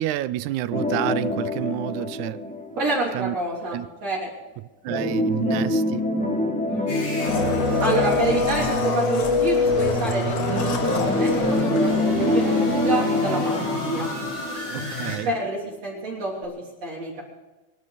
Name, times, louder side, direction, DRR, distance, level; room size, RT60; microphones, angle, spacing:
voice 1, 0.0-2.5 3.1-3.4 3.7-3.9 4.8-6.1 14.7-15.3, right 14 dB, 80° right, 2.0 m, -28 dB
sound 1, 0.7-3.4 4.9-9.2 10.5-15.4 15.7-15.8 16.4-16.5, left 2 dB, 5° left, 0.6 m, -26 dB
voice 2, 2.8-4.3 6.7-14.1 15.2-16.5 16.8-17.2, right 2 dB, 55° right, 4.4 m, -28 dB
sound 2, 6.9-15.2, equal, 60° left, 8.6 m, -29 dB
Domestic sounds home sounds, 7.2-12.5 12.7-12.8, left 4 dB, 75° left, 3.4 m, -25 dB
26.5 x 11.0 x 4.2 m
omnidirectional pair, 3.6 m